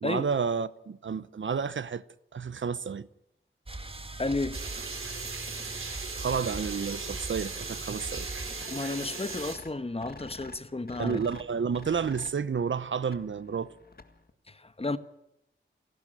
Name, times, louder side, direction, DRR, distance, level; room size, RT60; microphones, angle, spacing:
voice 1, 0.0-2.0 2.3-3.1 6.2-8.3 11.0-13.7, right 6 dB, 70° right, 0.8 m, -30 dB
sound 1, 3.7-8.7, right 2 dB, 25° right, 2.1 m, -40 dB
voice 2, 4.2-4.6 8.7-11.2 14.5-15.0, left 2 dB, 30° left, 1.2 m, -32 dB
sound 2, 4.5-9.6, right 4 dB, 85° right, 3.4 m, -38 dB
sound 3, 8.6-14.3, left 3 dB, 50° left, 1.9 m, -49 dB
28.5 x 12.0 x 9.0 m
wide cardioid pair, 70°, 20 cm